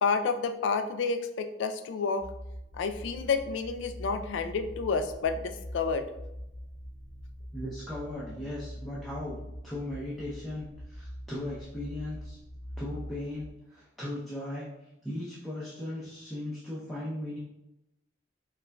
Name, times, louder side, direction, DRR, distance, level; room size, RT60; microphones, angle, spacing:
voice 1, 0.0-2.2 2.7-6.1, left 4 dB, 80° left, 9 dB, 0.3 m, -30 dB
sound 1, 2.2-13.5, equal, 45° left, 0.7 m, -43 dB
voice 2, 7.5-9.4 9.6-12.4 12.8-17.4, left 1 dB, ahead, -9 dB, 0.6 m, -37 dB
4.9 x 2.3 x 2.2 m, 0.90 s
head